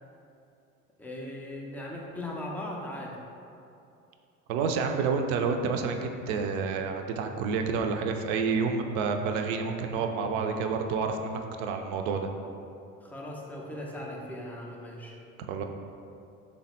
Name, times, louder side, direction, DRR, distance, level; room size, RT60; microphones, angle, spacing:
voice 1, 1.0-3.2 13.0-15.1, left 1 dB, 5° left, -3 dB, 0.3 m, -38 dB
voice 2, 4.5-12.3 15.5-15.6, right 5 dB, 60° right, 4 dB, 0.5 m, -29 dB
3.5 x 2.1 x 4.1 m, 2.6 s
hypercardioid pair, 70°, 43 cm